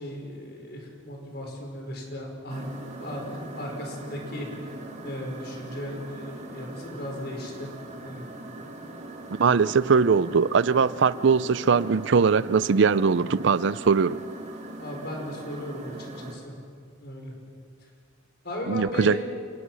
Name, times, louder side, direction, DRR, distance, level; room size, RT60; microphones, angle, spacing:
voice 1, 0.0-2.7 3.0-4.8 5.0-7.7 8.0-8.2 14.8-16.6 17.0-17.3 18.4-19.2, left 1 dB, 55° left, 5.1 m, -36 dB
sound 1, 2.5-16.4, right 2 dB, 35° right, 2.5 m, -41 dB
voice 2, 9.4-14.2 18.7-19.2, right 5 dB, 65° right, 0.5 m, -21 dB
27.5 x 19.5 x 6.3 m
head